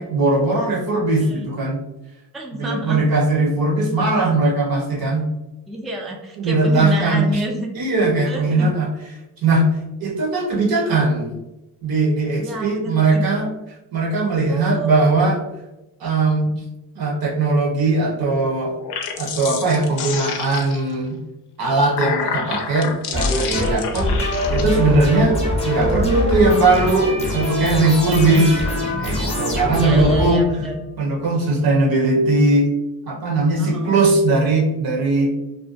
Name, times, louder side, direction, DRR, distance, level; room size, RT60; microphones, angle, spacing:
voice 1, 0.0-1.8 2.6-5.3 6.4-7.3 7.7-8.9 9.4-9.7 10.0-11.3 11.8-13.5 13.9-15.4 16.0-16.6 17.0-18.7 19.2-21.2 21.6-25.4 25.6-28.5 29.0-30.4 31.0-32.7 33.1-35.3, right 2 dB, 65° right, 0 dB, 0.8 m, -19 dB
voice 2, 2.3-3.0 5.7-7.7 8.3-8.7 12.4-13.4 14.5-15.0 24.0-24.2 28.0-28.6 29.7-30.7 33.6-34.1, right 1 dB, ahead, 0 dB, 0.3 m, -28 dB
sound 1, 18.7-21.0 21.6-24.6, left 6 dB, 80° left, 0.5 m, -29 dB
sound 2, 23.1-30.9, left 1 dB, 15° left, 0.7 m, -23 dB
2.5 x 2.2 x 2.4 m, 0.98 s
cardioid pair, 80°, 39 cm